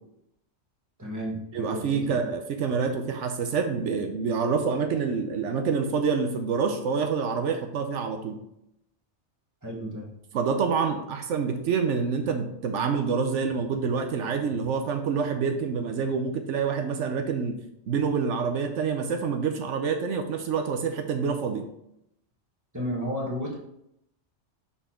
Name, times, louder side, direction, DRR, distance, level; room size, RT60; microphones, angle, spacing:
voice 1, 1.0-2.2 9.6-10.1 22.7-23.6, equal, 15° right, -3 dB, 1.4 m, -33 dB
voice 2, 1.5-8.4 10.3-17.5 17.9-21.7, right 5 dB, 80° right, 6 dB, 1.0 m, -27 dB
5.7 x 4.3 x 4.3 m, 0.79 s
omnidirectional pair, 1.2 m